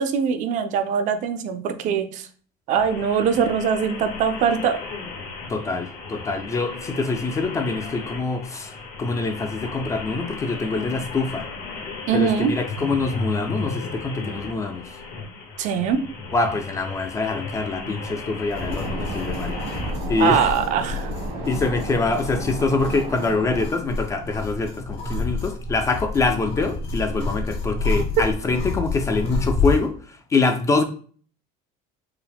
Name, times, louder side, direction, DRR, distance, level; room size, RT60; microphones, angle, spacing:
voice 1, 0.0-2.3 2.7-4.8 12.1-12.5 15.6-16.0 20.2-21.1, right 7 dB, 50° right, 0.4 m, -22 dB
sound 1, 2.8-19.9, left 3 dB, 70° left, 1.3 m, -35 dB
voice 2, 5.5-8.7 9.0-11.5 12.1-14.8 16.3-19.5 20.1-20.5 21.4-30.8, left 3 dB, 20° left, 0.3 m, -24 dB
sound 2, 18.5-29.9, left 3 dB, 40° left, 0.8 m, -29 dB
sound 3, 18.6-23.7, right 3 dB, 80° right, 1.4 m, -34 dB
4.6 x 2.1 x 3.4 m
cardioid pair, 165°, 16 cm